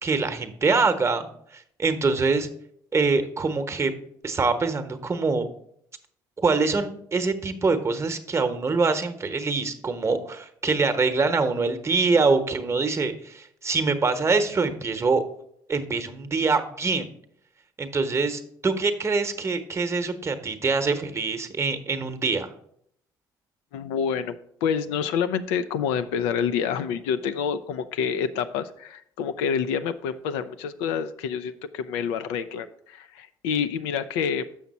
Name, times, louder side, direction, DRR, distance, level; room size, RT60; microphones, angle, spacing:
voice 1, 0.0-1.3 1.5-2.5 2.9-3.9 4.2-5.5 6.4-15.2 15.7-17.1 17.8-22.5, right 4 dB, 30° right, 8 dB, 0.9 m, -24 dB
voice 2, 23.7-24.4 24.6-34.5, left 7 dB, 75° left, 11 dB, 0.4 m, -27 dB
7.1 x 5.9 x 4.1 m, 0.69 s
hypercardioid pair, 60°, 10 cm